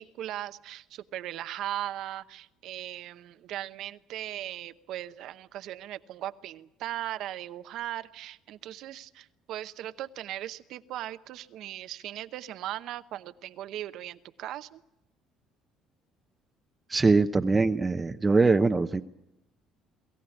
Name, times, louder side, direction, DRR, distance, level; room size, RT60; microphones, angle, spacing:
voice 1, 0.0-14.8, right 13 dB, 70° right, 12 dB, 0.9 m, -38 dB
voice 2, 16.9-19.0, right 3 dB, 20° right, 8 dB, 0.7 m, -22 dB
23.5 x 14.5 x 9.9 m, 0.94 s
cardioid pair, 100°, 0 cm